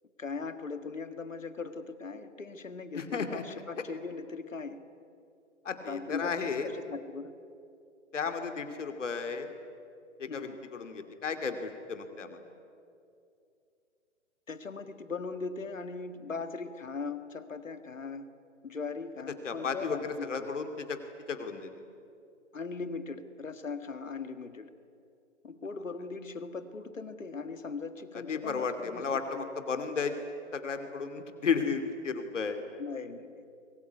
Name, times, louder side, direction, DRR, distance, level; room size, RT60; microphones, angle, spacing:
voice 1, 0.2-4.8 5.9-7.3 10.3-10.6 14.5-18.3 18.6-20.5 22.5-24.7 25.4-29.5 32.8-33.4, left 4 dB, 85° left, 10 dB, 2.1 m, -39 dB
voice 2, 2.9-3.4 5.6-6.7 8.1-9.5 10.2-12.4 19.4-21.0 21.3-21.7 28.3-30.2 30.5-32.7, left 5 dB, 70° left, 7 dB, 2.7 m, -33 dB
25.5 x 22.0 x 9.4 m, 2.6 s
figure-of-eight pair, 135°, 38 cm